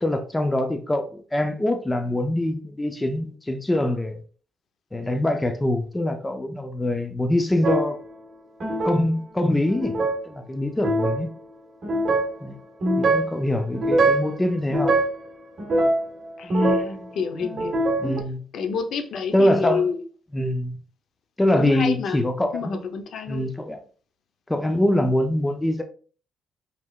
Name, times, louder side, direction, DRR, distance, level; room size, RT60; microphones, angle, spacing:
voice 1, 0.0-4.2 4.9-8.0 8.8-9.9 10.2-11.3 12.4-12.6 13.0-15.0 18.0-18.4 19.3-19.9 20.3-20.8 21.4-22.8 23.3-23.8 24.5-25.8, left 1 dB, 15° left, 0.6 m, -24 dB
sound 1, 7.6-8.0 8.6-9.0 9.7-10.2 10.8-11.2 11.8-12.4 12.8-13.3 13.7-14.4 14.7-15.2 15.6-17.0 17.4-18.2, right 2 dB, 45° right, 1.4 m, -22 dB
voice 2, 16.4-17.8 18.5-20.0 21.6-22.2 22.5-23.5, left 6 dB, 65° left, 0.8 m, -29 dB
4.9 x 3.4 x 2.4 m
cardioid pair, 90°, 0 cm